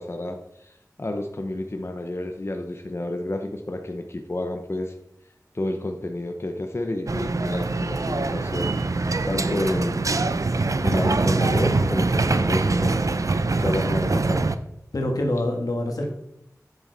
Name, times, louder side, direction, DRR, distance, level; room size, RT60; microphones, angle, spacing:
voice 1, 0.0-4.9 5.5-8.7 9.2-10.2 10.8-13.1 13.6-14.6, left 1 dB, 45° left, 4 dB, 0.8 m, -30 dB
sound 1, 7.1-14.6, right 3 dB, 60° right, 0.5 m, -23 dB
voice 2, 14.9-16.1, left 1 dB, 85° left, 1 dB, 1.6 m, -25 dB
9.0 x 6.4 x 4.0 m, 0.79 s
wide cardioid pair, 55°, 6 cm